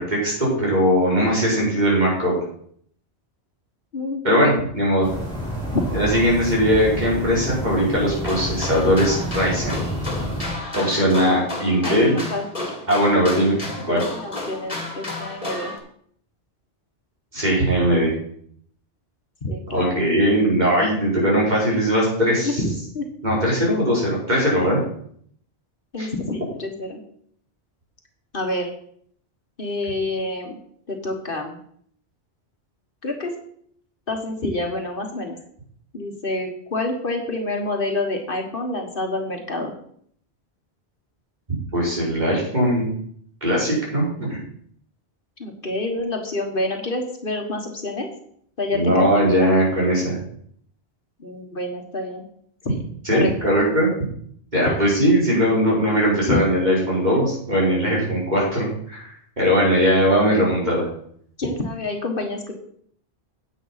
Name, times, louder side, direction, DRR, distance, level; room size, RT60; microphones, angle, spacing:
voice 1, 0.0-2.3 4.2-5.1 5.9-9.8 10.7-12.2 12.9-13.6 13.9-14.0 17.3-18.1 19.7-22.6 23.2-24.8 26.0-26.1 41.7-42.9 43.4-44.4 48.7-50.2 53.0-53.9 54.5-59.1 59.4-60.9, equal, 40° right, -5 dB, 5.0 m, -19 dB
voice 2, 3.9-4.6 5.7-5.8 11.8-12.0 12.3-12.7 13.9-15.7 19.4-19.9 22.4-23.0 25.9-27.0 28.3-28.7 29.6-30.6 30.9-31.6 33.0-33.3 34.1-35.4 35.9-39.7 45.4-48.1 48.6-49.5 51.2-52.2 52.6-52.8 53.1-53.3 54.6-54.8 56.3-56.4 60.2-60.4 61.4-62.5, left 2 dB, 55° left, 3 dB, 1.6 m, -27 dB
sound 1, 5.0-10.5, equal, 5° left, 3.5 m, -29 dB
sound 2, 8.1-15.8, left 2 dB, 35° left, 2.3 m, -32 dB
9.2 x 8.2 x 5.7 m, 0.63 s
omnidirectional pair, 1.1 m